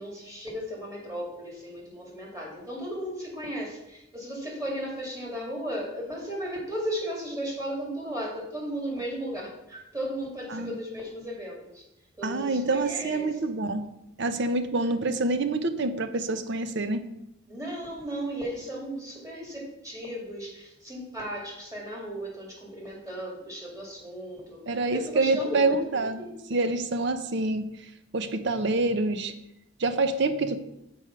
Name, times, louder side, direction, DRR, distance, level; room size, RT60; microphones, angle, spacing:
voice 1, 0.0-11.8 12.2-13.4 17.5-25.8 26.2-26.3, equal, 15° right, -3 dB, 2.2 m, -35 dB
voice 2, 12.2-13.9 14.2-17.0 24.7-26.2 26.5-27.7 28.1-29.3 29.8-30.6, right 2 dB, 55° right, 10 dB, 0.6 m, -26 dB
7.0 x 4.8 x 5.7 m, 0.88 s
head